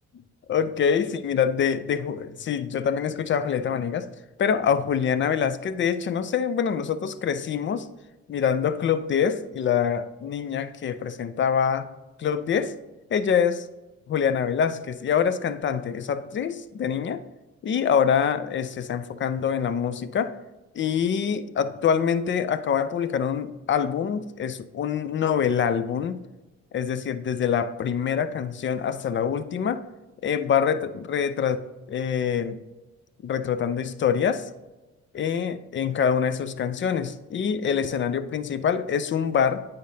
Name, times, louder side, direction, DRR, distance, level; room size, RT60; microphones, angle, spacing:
voice 1, 0.5-4.1 4.4-7.9 8.3-11.9 12.2-12.8 13.1-13.7 14.1-17.2 17.6-20.4 20.7-26.2 26.7-29.9 30.2-32.6 33.2-34.5 35.1-39.7, left 7 dB, 40° left, 0.5 m, -25 dB
8.6 x 5.1 x 2.7 m
cardioid pair, 90°, 30 cm